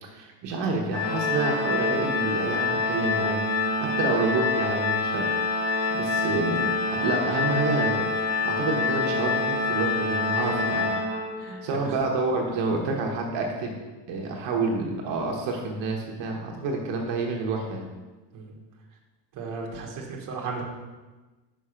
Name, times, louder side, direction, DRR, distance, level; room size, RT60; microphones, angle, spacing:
voice 1, 0.0-3.4 3.8-5.3 5.9-8.1 8.4-10.9 11.6-13.7 14.1-17.8, right 3 dB, 70° right, 0 dB, 1.1 m, -28 dB
Organ, 0.9-11.7, left 3 dB, 80° left, 2.4 m, -26 dB
voice 2, 11.4-11.9 18.3-18.5 19.3-20.6, right 4 dB, 45° right, -1 dB, 1.3 m, -36 dB
5.6 x 5.6 x 5.0 m, 1.2 s
cardioid pair, 170°, 45 cm